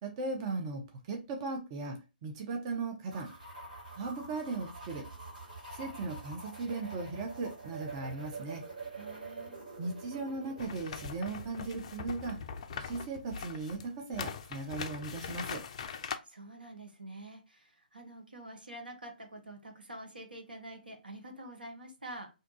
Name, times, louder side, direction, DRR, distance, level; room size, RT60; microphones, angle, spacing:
voice 1, 0.0-3.3 4.0-5.1 5.7-8.6 9.8-12.4 12.7-15.6, right 3 dB, 30° right, 2 dB, 0.5 m, -37 dB
sound 1, 3.1-11.7, right 3 dB, 60° right, 1.9 m, -46 dB
voice 2, 8.9-9.6 12.7-12.8 16.3-22.3, right 1 dB, 80° right, 4 dB, 0.9 m, -47 dB
sound 2, 10.6-16.2, left 6 dB, 40° left, 0.3 m, -41 dB
2.7 x 2.3 x 3.8 m, 0.28 s
figure-of-eight pair, 130°, 5 cm